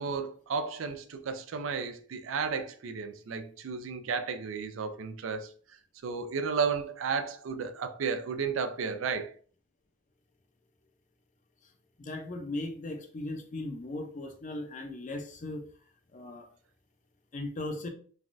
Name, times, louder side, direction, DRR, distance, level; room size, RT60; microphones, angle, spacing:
voice 1, 0.0-5.5 6.0-9.3, right 5 dB, 90° right, 0.4 m, -33 dB
voice 2, 12.0-15.6 16.1-16.5 17.3-17.9, left 2 dB, 40° left, 0.5 m, -37 dB
3.3 x 2.2 x 2.5 m
head